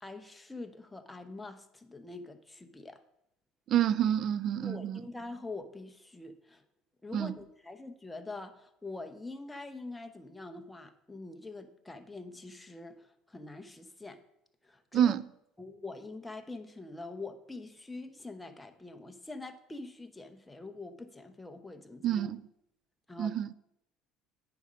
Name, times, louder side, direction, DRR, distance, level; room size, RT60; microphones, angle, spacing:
voice 1, 0.0-3.0 4.6-6.6 7.0-14.2 14.6-15.1 15.6-22.3 23.1-23.4, left 2 dB, 10° left, 0.8 m, -44 dB
voice 2, 3.7-5.0 7.1-7.3 14.9-15.2 22.0-22.4 23.2-23.5, right 10 dB, 50° right, 0.4 m, -28 dB
9.1 x 5.3 x 5.0 m
cardioid pair, 115°, 0 cm